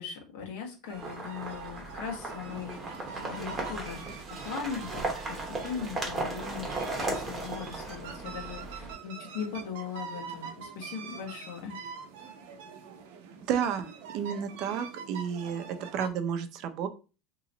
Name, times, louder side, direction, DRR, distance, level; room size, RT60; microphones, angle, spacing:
voice 1, 0.0-2.8 3.2-11.8, left 6 dB, 80° left, 1 dB, 1.3 m, -39 dB
sound 1, 0.8-16.1, right 6 dB, 85° right, 0.7 m, -44 dB
sound 2, 0.9-8.9, right 2 dB, 15° right, 1.0 m, -36 dB
voice 2, 13.5-16.9, right 8 dB, 50° right, 9 dB, 0.5 m, -31 dB
3.0 x 2.9 x 3.9 m, 0.33 s
cardioid pair, 160°, 0 cm